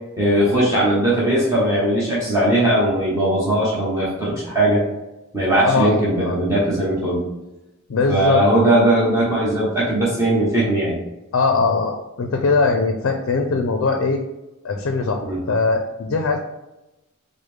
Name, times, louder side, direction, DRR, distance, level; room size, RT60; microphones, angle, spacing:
voice 1, 0.2-4.9 5.3-7.2 8.1-11.0 15.2-15.4, right 1 dB, 15° right, -8 dB, 0.9 m, -19 dB
voice 2, 5.6-6.4 7.9-8.7 11.3-14.2 14.6-16.4, left 4 dB, 70° left, 4 dB, 0.4 m, -21 dB
4.9 x 2.1 x 3.2 m, 0.98 s
head